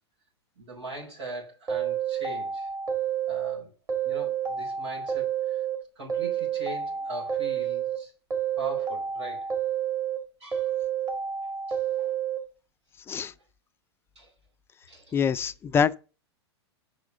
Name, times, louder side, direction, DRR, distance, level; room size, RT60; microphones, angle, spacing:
voice 1, 0.6-2.7 3.3-3.7 4.0-5.6 6.0-8.1 8.6-9.5 10.4-10.7 11.7-12.1 13.2-13.3 14.2-14.3 14.9-15.2, right 2 dB, 80° right, 4.4 m, -41 dB
sound 1, 1.7-3.6 3.9-5.8 6.1-8.0 8.3-10.2 10.5-12.4, right 8 dB, 25° right, 2.0 m, -29 dB
voice 2, 15.1-16.0, left 7 dB, 15° left, 0.4 m, -25 dB
6.2 x 4.7 x 6.6 m
hypercardioid pair, 100°, 14 cm